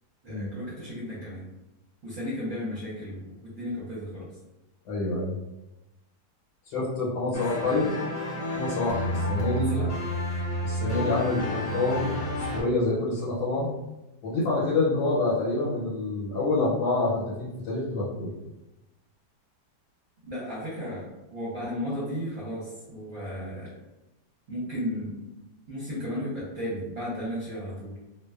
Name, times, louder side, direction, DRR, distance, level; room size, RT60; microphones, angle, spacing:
voice 1, 0.2-1.4 2.0-4.3 7.2-7.4 9.4-9.9 20.3-23.8 24.5-25.3 25.7-27.9, equal, 60° right, -9 dB, 1.0 m, -34 dB
voice 2, 4.9-5.3 6.7-8.0 8.5-9.7 10.6-12.1 12.5-13.7 14.2-18.3, left 2 dB, 80° left, -7 dB, 1.2 m, -27 dB
sound 1, 7.3-12.6, equal, 55° left, 0.9 m, -30 dB
2.6 x 2.2 x 2.2 m, 0.96 s
omnidirectional pair, 1.8 m